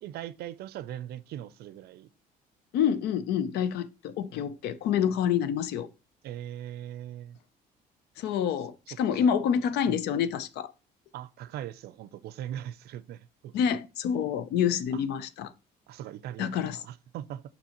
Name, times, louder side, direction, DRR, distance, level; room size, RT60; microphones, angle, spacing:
voice 1, 0.0-2.1 6.2-7.4 9.1-9.4 9.9-10.1 11.1-13.5 14.9-15.0 15.9-17.4, right 11 dB, 70° right, 0.5 m, -40 dB
voice 2, 2.7-5.9 8.2-10.7 13.5-15.5 16.4-16.8, left 8 dB, 80° left, 0.6 m, -27 dB
7.0 x 5.4 x 2.9 m
cardioid pair, 110°, 17 cm